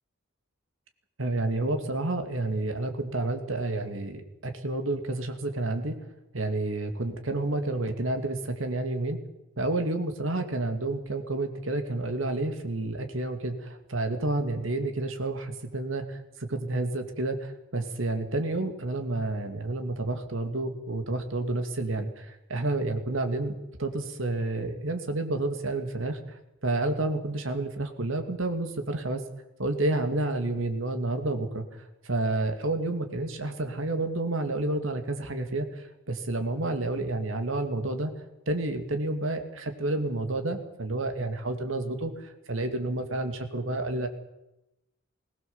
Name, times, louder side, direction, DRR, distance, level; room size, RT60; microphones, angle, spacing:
voice 1, 1.2-6.0 6.3-9.2 9.6-29.2 29.6-31.6 32.1-38.1 38.5-44.1, right 2 dB, 85° right, 6 dB, 2.4 m, -30 dB
20.5 x 18.5 x 7.2 m, 0.93 s
head